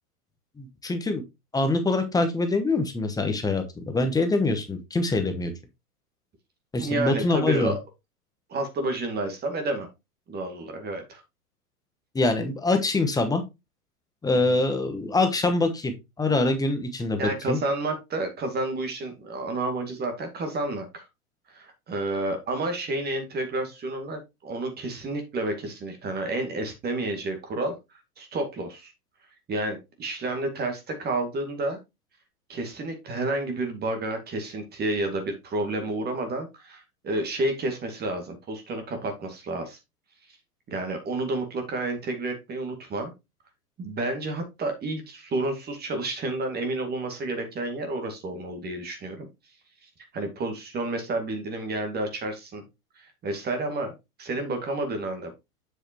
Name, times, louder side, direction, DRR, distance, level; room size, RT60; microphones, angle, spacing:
voice 1, 0.6-1.2 1.5-5.5 6.7-7.7 12.1-13.4 14.2-17.2 17.5-17.6, left 2 dB, 10° left, 6 dB, 1.1 m, -24 dB
voice 2, 6.8-7.8 8.5-9.9 10.3-11.2 17.2-21.0 21.5-27.8 28.2-28.9 29.5-31.8 32.5-39.8 40.7-43.1 43.8-49.3 50.1-52.6 53.0-53.9 54.2-55.3, right 2 dB, 20° right, 5 dB, 2.0 m, -30 dB
7.7 x 6.5 x 2.9 m, 0.23 s
figure-of-eight pair, 105°, 46 cm